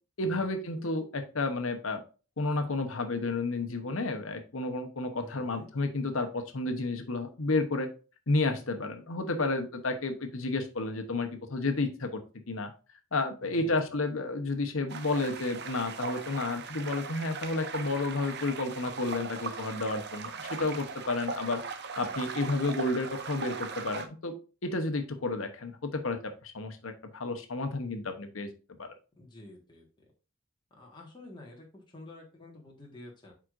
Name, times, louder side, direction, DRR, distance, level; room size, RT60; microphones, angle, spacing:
voice 1, 0.2-2.0 2.4-7.9 8.3-12.2 12.5-12.7 13.1-21.6 22.0-24.3 24.6-28.5 28.8-28.9, left 2 dB, 90° left, 7 dB, 1.0 m, -31 dB
voice 2, 5.2-5.7 13.4-13.9 29.2-30.0 30.8-33.3, left 2 dB, 20° left, -2 dB, 1.6 m, -49 dB
sound 1, 14.9-24.1, right 5 dB, 55° right, 0.7 m, -39 dB
7.5 x 5.0 x 2.6 m, 0.34 s
head